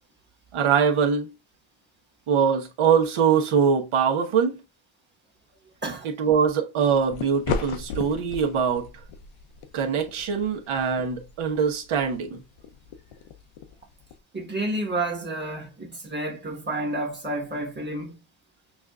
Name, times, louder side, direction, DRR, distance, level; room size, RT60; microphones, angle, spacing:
voice 1, 0.5-1.3 2.3-4.6 6.2-8.9 9.7-12.4, right 7 dB, 75° right, 1.2 m, -23 dB
sound 1, 6.9-14.2, left 5 dB, 85° left, 0.8 m, -37 dB
voice 2, 14.3-18.2, right 2 dB, 20° right, 1.3 m, -30 dB
6.1 x 2.5 x 2.4 m
cardioid pair, 90°, 50 cm